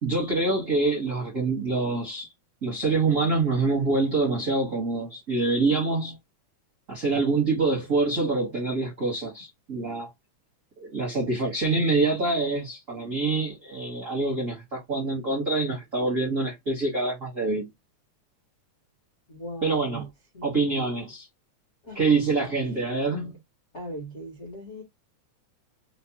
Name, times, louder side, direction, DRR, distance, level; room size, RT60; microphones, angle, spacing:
voice 1, 0.0-2.3 2.6-6.2 6.9-10.1 10.8-17.7 19.6-20.0 20.4-21.3 21.9-23.4, right 3 dB, 65° right, 0.7 m, -25 dB
voice 2, 19.3-20.1 20.3-20.5 21.8-22.0 23.7-24.8, equal, 85° left, 0.6 m, -38 dB
5.0 x 2.1 x 2.8 m
omnidirectional pair, 3.5 m